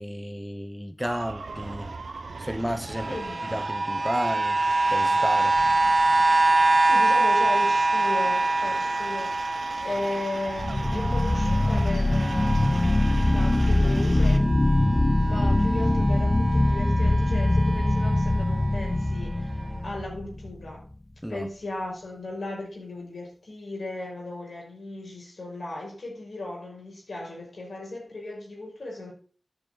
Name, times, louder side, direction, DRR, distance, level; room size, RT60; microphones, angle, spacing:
voice 1, 0.0-1.9 2.4-3.2 3.5-4.6 4.9-5.6 21.2-21.5, equal, ahead, 1.0 m, -32 dB
sound 1, 1.0-14.4, right 3 dB, 85° right, 0.9 m, -40 dB
sound 2, 3.0-14.0 14.3-18.9 19.6-19.7, right 2 dB, 50° right, 0.3 m, -25 dB
voice 2, 3.1-3.6 6.8-9.4 9.8-13.0 13.3-14.5 15.2-19.6 19.8-20.8 21.3-29.1, left 2 dB, 85° left, 5.8 m, -36 dB
sound 3, 5.6-6.1 10.5-20.7, left 1 dB, 30° left, 0.6 m, -23 dB
10.5 x 6.6 x 4.1 m
wide cardioid pair, 50°, 0 cm